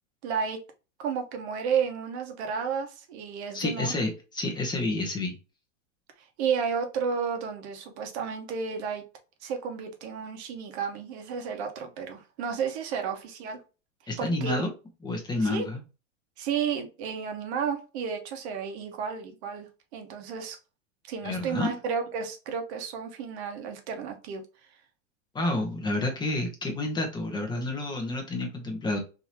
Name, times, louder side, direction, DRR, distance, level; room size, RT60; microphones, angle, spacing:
voice 1, 0.2-0.6 1.0-3.9 6.4-9.0 9.4-13.6 14.2-14.6 15.4-15.7 16.4-20.6 21.0-24.4, right 6 dB, 60° right, 5 dB, 1.1 m, -32 dB
voice 2, 3.5-5.3 14.1-14.7 15.0-15.8 21.2-21.7 25.3-29.0, left 2 dB, 10° left, 2 dB, 1.0 m, -29 dB
3.6 x 2.9 x 2.9 m, 0.31 s
supercardioid pair, 135°, 38 cm